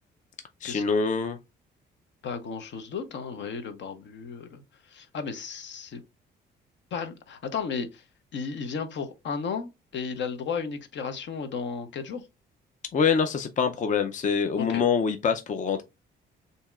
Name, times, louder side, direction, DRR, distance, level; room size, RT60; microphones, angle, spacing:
voice 1, 0.6-1.4 12.9-15.8, left 6 dB, 40° left, 0.5 m, -25 dB
voice 2, 2.2-6.0 6.9-8.0 8.3-12.3 14.6-14.8, left 5 dB, 65° left, 0.9 m, -34 dB
6.9 x 2.8 x 2.4 m
cardioid pair, 90°, 20 cm